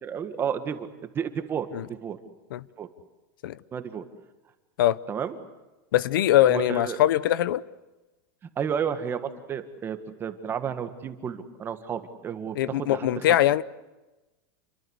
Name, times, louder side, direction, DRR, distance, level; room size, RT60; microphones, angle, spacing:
voice 1, 0.0-0.9 1.1-2.2 2.8-2.9 3.7-4.0 5.1-5.3 6.4-7.0 8.5-13.4, right 7 dB, 20° right, 8 dB, 1.8 m, -32 dB
voice 2, 5.9-7.6 12.6-13.6, left 13 dB, 80° left, 19 dB, 0.9 m, -22 dB
29.0 x 23.0 x 8.1 m, 1.1 s
supercardioid pair, 160°, 11 cm